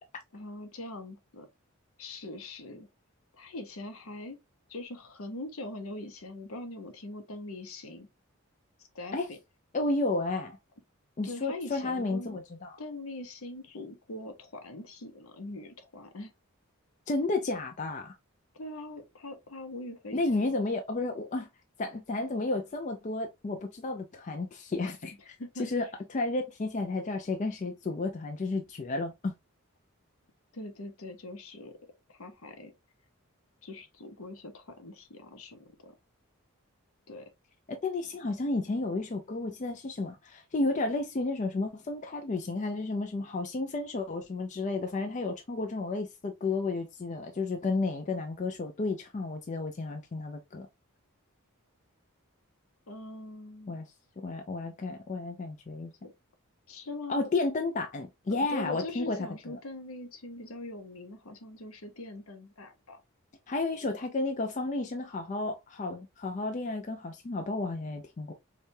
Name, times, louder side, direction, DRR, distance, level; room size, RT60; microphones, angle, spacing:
voice 1, 0.3-1.5 2.0-2.9 3.3-4.4 4.7-8.1 8.8-9.4 11.2-12.4 12.8-16.3 18.5-20.2 20.5-20.6 25.2-25.8 30.5-31.7 32.1-32.7 33.6-35.9 37.1-37.3 52.9-53.8 56.0-56.1 56.7-57.3 58.3-63.0, left 2 dB, 70° left, 0.8 m, -42 dB
voice 2, 9.7-10.6 11.2-12.8 17.1-18.2 20.1-21.5 21.8-25.8 26.1-29.3 37.7-50.7 53.7-53.9 54.2-55.9 57.1-59.3 63.5-68.3, left 3 dB, 35° left, 0.4 m, -32 dB
4.8 x 2.3 x 2.7 m
head